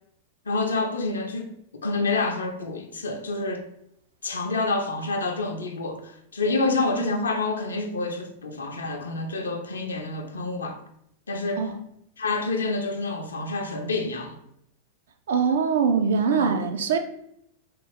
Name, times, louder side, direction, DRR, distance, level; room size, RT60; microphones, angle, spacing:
voice 1, 0.5-1.5 1.8-3.7 4.2-10.8 11.3-11.7 12.2-14.4 16.3-16.5, left 3 dB, 70° left, 0.4 m, -28 dB
voice 2, 15.3-17.0, right 5 dB, 60° right, 0.3 m, -22 dB
3.2 x 2.4 x 3.2 m
figure-of-eight pair, 90°, 0 cm